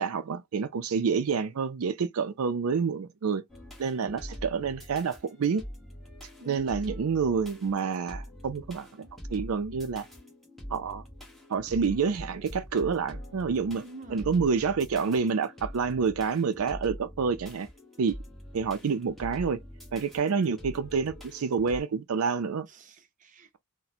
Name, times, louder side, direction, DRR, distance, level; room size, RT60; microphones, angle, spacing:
voice 1, 0.0-3.4 3.8-5.6 6.5-10.1 10.7-11.0 11.5-13.8 14.1-17.7 18.0-18.2 18.5-19.6 19.9-22.7, right 5 dB, 80° right, 0.5 m, -28 dB
sound 1, 3.5-21.8, equal, ahead, 1.2 m, -44 dB
voice 2, 6.4-6.8 13.8-14.4 22.7-23.6, right 2 dB, 35° right, 0.7 m, -47 dB
4.1 x 2.1 x 2.7 m
head